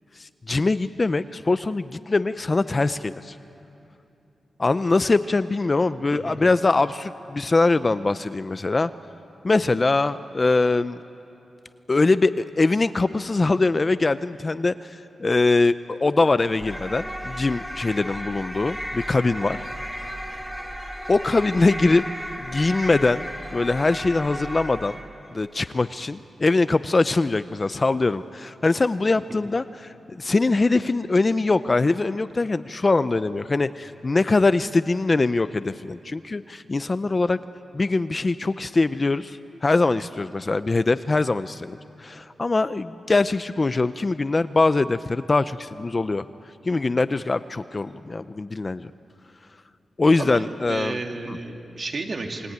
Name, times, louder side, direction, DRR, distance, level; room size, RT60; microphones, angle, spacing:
voice 1, 0.2-3.4 4.6-8.9 9.4-11.0 11.9-19.6 21.1-22.0 22.4-25.0 25.3-37.4 37.7-46.2 46.6-48.9 50.0-51.0 51.3-51.4, left 3 dB, 25° left, 13 dB, 0.5 m, -22 dB
sound 1, 16.6-25.2, equal, 5° right, 2.4 m, -34 dB
voice 2, 50.2-52.5, right 3 dB, 45° right, 3 dB, 2.5 m, -32 dB
28.0 x 22.0 x 9.5 m, 2.8 s
wide cardioid pair, 135°, 0 cm